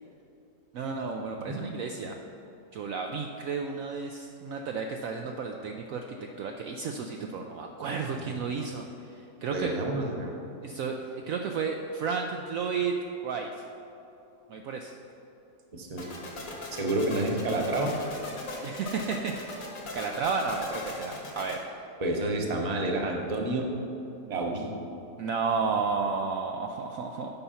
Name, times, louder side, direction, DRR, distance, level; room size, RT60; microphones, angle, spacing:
voice 1, 0.7-2.2 2.7-6.0 6.4-9.7 10.6-13.0 13.2-13.7 14.5-14.9 18.6-21.6 25.2-27.3, right 5 dB, 70° right, 3 dB, 0.9 m, -32 dB
voice 2, 8.1-8.4 9.5-10.3 15.7-16.1 16.7-17.9 22.0-23.7 24.3-24.7, right 2 dB, 30° right, 1 dB, 0.9 m, -29 dB
sound 1, 16.0-21.5, left 2 dB, 60° left, 1.9 m, -39 dB
9.2 x 5.8 x 5.6 m, 2.8 s
omnidirectional pair, 1.7 m